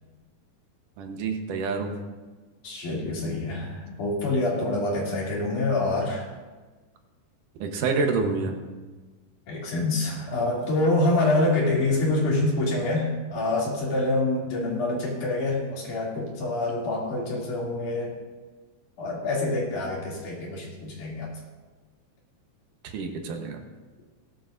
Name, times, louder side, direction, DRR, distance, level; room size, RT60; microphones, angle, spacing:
voice 1, 1.0-1.9 7.6-8.5 22.8-23.6, right 4 dB, 90° right, 4 dB, 2.7 m, -27 dB
voice 2, 2.6-6.2 9.5-18.1 19.0-21.3, left 2 dB, 75° left, -4 dB, 4.4 m, -26 dB
18.0 x 11.5 x 2.6 m, 1.3 s
omnidirectional pair, 3.5 m